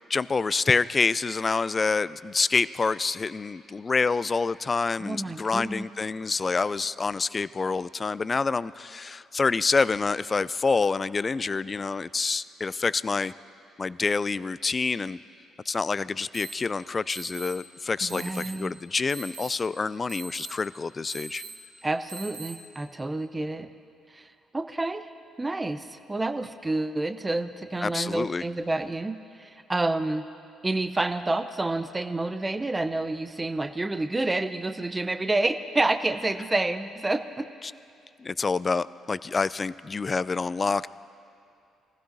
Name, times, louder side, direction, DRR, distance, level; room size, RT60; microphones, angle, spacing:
voice 1, 0.1-13.3 13.8-15.2 15.7-21.4 27.8-28.4 38.2-40.9, left 4 dB, 35° left, 19 dB, 0.3 m, -27 dB
voice 2, 5.0-5.9 18.0-18.7 21.8-23.7 24.1-24.3 24.5-25.1 25.4-30.2 30.6-37.5, right 2 dB, 20° right, 11 dB, 0.6 m, -29 dB
sound 1, 16.3-16.5 17.1-17.5 18.1-18.5 19.1-19.5 20.1-20.5 21.1-21.5 22.1-22.5, right 4 dB, 70° right, 2.4 m, -40 dB
23.0 x 15.5 x 2.7 m, 2.6 s
hypercardioid pair, 45°, 0 cm